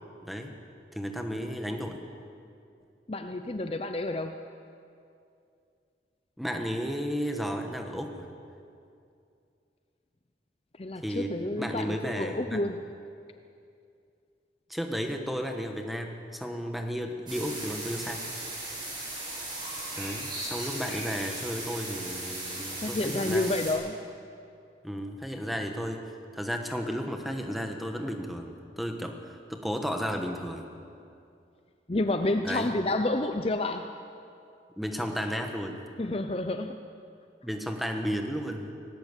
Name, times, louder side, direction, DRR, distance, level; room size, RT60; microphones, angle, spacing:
voice 1, 0.2-0.5 0.9-2.0 6.4-8.3 11.0-12.6 14.7-18.3 19.9-23.5 24.8-30.7 32.4-32.7 34.8-35.8 37.4-38.7, equal, ahead, 4 dB, 1.5 m, -33 dB
voice 2, 3.1-4.4 10.8-12.8 22.8-24.0 31.9-33.9 36.0-36.8, left 2 dB, 35° left, 7 dB, 0.7 m, -29 dB
sound 1, 17.3-23.7, right 2 dB, 25° right, 7.4 m, -37 dB
18.5 x 18.0 x 8.3 m, 2.5 s
head